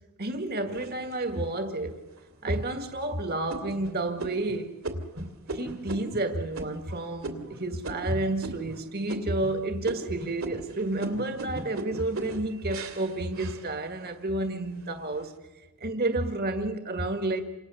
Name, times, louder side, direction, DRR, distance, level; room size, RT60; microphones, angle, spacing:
voice 1, 0.2-2.0 2.4-4.7 5.5-15.4 15.8-17.4, right 2 dB, 45° right, 7 dB, 1.8 m, -30 dB
sound 1, 0.7-1.5 2.1-2.2 2.7-3.0 3.5-8.8 9.1-9.6 9.8-14.2 14.6-15.2, right 2 dB, 65° right, 2.8 m, -38 dB
28.5 x 27.0 x 7.1 m, 1.1 s
head